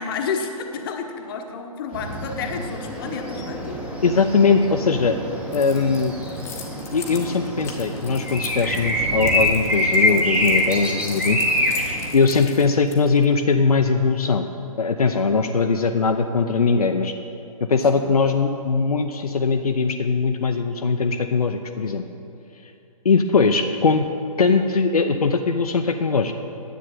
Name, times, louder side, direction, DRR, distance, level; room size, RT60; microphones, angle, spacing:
voice 1, 0.0-3.8 12.3-12.4 17.8-18.1, left 5 dB, 35° left, 4 dB, 1.0 m, -31 dB
sound 1, 1.9-12.1, left 1 dB, 5° right, 1.2 m, -25 dB
voice 2, 4.0-5.2 5.5-6.1 6.9-11.7 12.1-14.5 14.8-17.1 17.7-22.0 23.0-24.1 24.4-26.3, left 4 dB, 80° left, 5 dB, 0.6 m, -20 dB
Keys jangling, 5.5-13.3, left 6 dB, 15° left, 1.1 m, -40 dB
10.0 x 8.1 x 7.5 m, 2.9 s
figure-of-eight pair, 130°, 19 cm